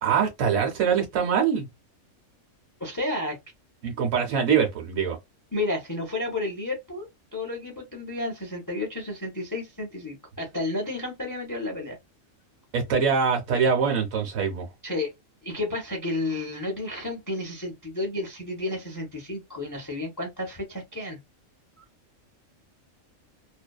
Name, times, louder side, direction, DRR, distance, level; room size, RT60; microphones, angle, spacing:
voice 1, 0.0-1.7 3.8-5.2 12.7-14.7, right 6 dB, 90° right, 1.1 m, -23 dB
voice 2, 2.8-3.4 5.5-12.0 14.8-15.1 15.4-21.2, left 2 dB, 25° left, 0.4 m, -31 dB
2.6 x 2.1 x 2.3 m
omnidirectional pair, 1.3 m